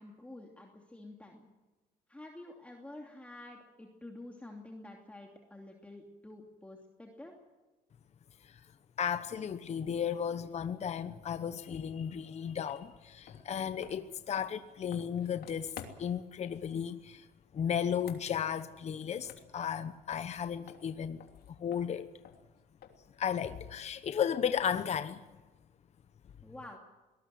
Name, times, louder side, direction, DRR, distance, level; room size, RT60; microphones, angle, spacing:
voice 1, 0.0-1.5 2.1-7.4 26.4-26.8, left 1 dB, 10° left, 2.8 m, -49 dB
voice 2, 9.0-17.3 17.5-21.2 21.6-22.1 23.2-25.2, left 8 dB, 40° left, 1.0 m, -34 dB
sound 1, 12.7-12.8 13.2-16.3 17.8-19.8 20.1-23.2, left 8 dB, 65° left, 3.0 m, -52 dB
23.0 x 19.0 x 7.7 m
cardioid pair, 110°, 17 cm